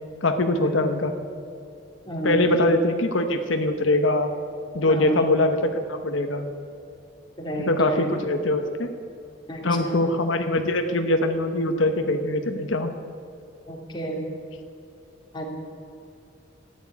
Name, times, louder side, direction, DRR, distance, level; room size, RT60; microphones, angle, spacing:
voice 1, 0.2-1.1 2.2-4.3 4.7-6.5 7.6-8.9 9.6-12.9, left 2 dB, 85° left, 6 dB, 1.0 m, -23 dB
voice 2, 2.1-2.7 4.9-5.3 7.4-8.1 9.5-10.1 13.7-14.2 15.3-15.5, right 1 dB, 25° left, 0 dB, 2.6 m, -30 dB
13.5 x 9.6 x 9.6 m, 2.5 s
head